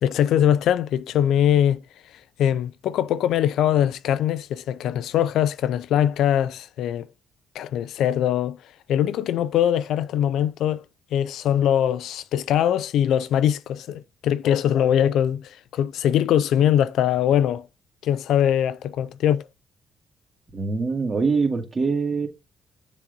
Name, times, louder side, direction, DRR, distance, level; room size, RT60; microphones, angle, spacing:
voice 1, 0.0-1.8 2.4-7.1 7.5-8.6 8.9-10.8 11.1-17.7 18.0-19.5, left 10 dB, 80° left, 0.4 m, -22 dB
voice 2, 20.5-22.3, right 4 dB, 30° right, 2.2 m, -23 dB
7.2 x 3.9 x 5.3 m
cardioid pair, 90°, 0 cm